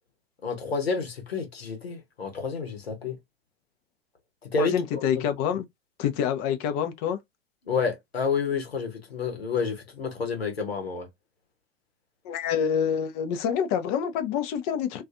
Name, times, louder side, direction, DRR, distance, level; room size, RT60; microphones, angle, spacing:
voice 1, 0.4-3.2 4.4-5.2 7.6-11.1, left 5 dB, 75° left, 0.9 m, -29 dB
voice 2, 4.6-5.6 6.0-7.2 12.2-15.0, left 8 dB, 40° left, 0.6 m, -27 dB
2.4 x 2.3 x 2.5 m
figure-of-eight pair, 80°, 31 cm